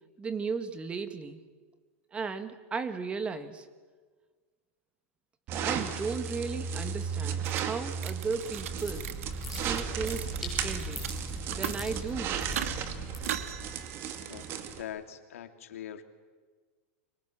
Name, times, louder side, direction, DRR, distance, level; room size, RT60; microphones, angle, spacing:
voice 1, 0.2-1.4 2.1-3.6 5.6-9.1 9.5-11.1 11.5-12.4, right 5 dB, 15° right, 10 dB, 1.6 m, -35 dB
sound 1, 5.5-14.8, right 7 dB, 35° right, 2.3 m, -35 dB
sound 2, 7.4-7.6 7.9-8.7 9.0-11.1 11.4-11.9 12.3-12.7 13.2-14.6, right 10 dB, 80° right, 2.1 m, -39 dB
sound 3, 8.3-13.7, equal, ahead, 7.6 m, -40 dB
voice 2, 14.8-16.0, left 10 dB, 85° left, 7 dB, 2.6 m, -42 dB
29.5 x 25.0 x 7.4 m, 1.4 s
supercardioid pair, 150°, 7 cm